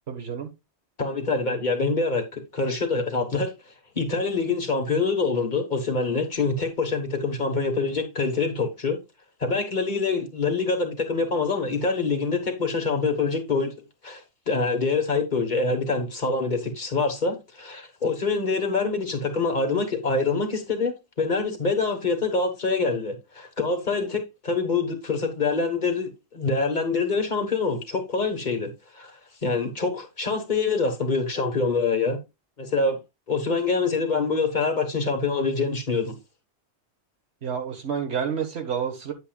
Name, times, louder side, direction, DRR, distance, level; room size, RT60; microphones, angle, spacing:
voice 1, 0.1-0.5 37.4-39.1, right 7 dB, 75° right, 1.7 m, -29 dB
voice 2, 1.0-3.5 3.9-9.0 9.4-13.7 14.0-14.2 14.5-29.1 29.4-32.2 32.6-33.0 33.3-36.1, left 4 dB, 45° left, 1.5 m, -25 dB
9.0 x 8.2 x 2.3 m
omnidirectional pair, 1.1 m